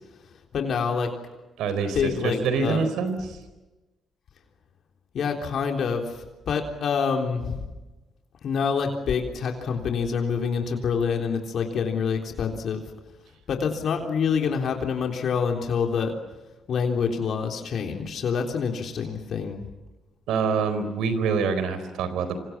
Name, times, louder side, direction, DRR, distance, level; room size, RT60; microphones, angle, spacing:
voice 1, 0.5-1.1 1.9-2.9 5.1-7.6 8.4-12.8 13.5-16.1 16.7-19.6, left 6 dB, 60° left, 3 dB, 3.6 m, -26 dB
voice 2, 1.6-3.4 20.3-22.4, right 5 dB, 85° right, 11 dB, 4.2 m, -26 dB
26.5 x 26.5 x 7.3 m, 1.1 s
cardioid pair, 90°, 0 cm